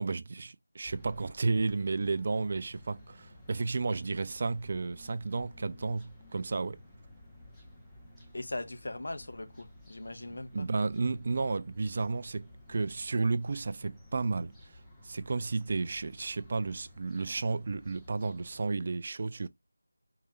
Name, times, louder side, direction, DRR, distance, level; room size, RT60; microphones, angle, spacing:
voice 1, 0.0-6.8 10.3-14.5 15.0-19.5, right 3 dB, 40° right, 0.3 m, -32 dB
sound 1, 0.8-18.6, left 1 dB, 5° left, 0.8 m, -54 dB
voice 2, 8.3-10.7, left 2 dB, 60° left, 0.7 m, -40 dB
4.7 x 2.8 x 2.2 m
figure-of-eight pair, 165°, 0 cm